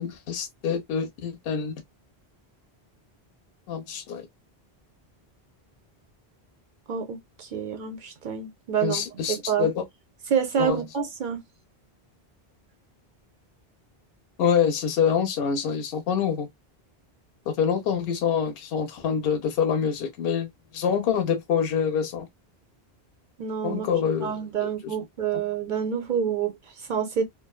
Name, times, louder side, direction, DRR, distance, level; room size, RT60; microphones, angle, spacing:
voice 1, 0.0-1.8 3.7-4.3 8.8-9.8 10.5-10.8 14.4-16.5 17.5-22.3 23.6-24.9, left 7 dB, 70° left, 0.8 m, -26 dB
voice 2, 6.9-9.7 10.3-11.4 23.4-23.9 24.2-27.2, right 7 dB, 55° right, 0.6 m, -28 dB
2.5 x 2.2 x 2.2 m
omnidirectional pair, 1.1 m